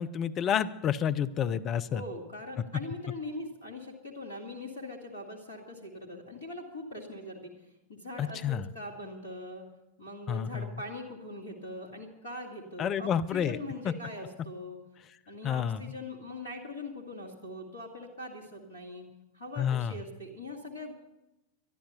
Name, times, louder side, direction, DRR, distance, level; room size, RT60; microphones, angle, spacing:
voice 1, 0.0-2.0 8.2-8.7 10.3-10.7 12.8-13.6 13.8-13.9 15.4-15.8 19.6-19.9, left 8 dB, 30° left, 14 dB, 0.6 m, -29 dB
voice 2, 1.9-7.5 7.9-9.7 10.0-14.8 15.3-19.0 19.3-20.9, left 1 dB, 75° left, -4 dB, 2.2 m, -42 dB
12.5 x 11.5 x 6.9 m, 0.97 s
figure-of-eight pair, 90°, 0 cm